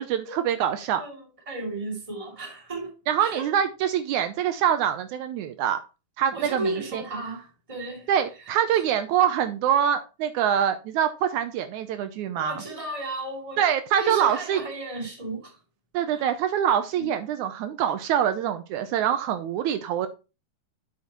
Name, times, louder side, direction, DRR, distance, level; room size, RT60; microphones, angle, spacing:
voice 1, 0.0-1.0 3.1-5.8 6.2-7.0 8.1-12.6 13.6-14.6 15.9-20.1, right 9 dB, 80° right, 2.1 m, -25 dB
voice 2, 0.9-3.5 6.3-8.1 8.7-8.8 12.3-13.6 14.0-15.6 16.1-16.3 17.0-17.1 17.9-18.0, right 1 dB, 10° right, 2.2 m, -34 dB
8.3 x 7.4 x 3.0 m
omnidirectional pair, 3.5 m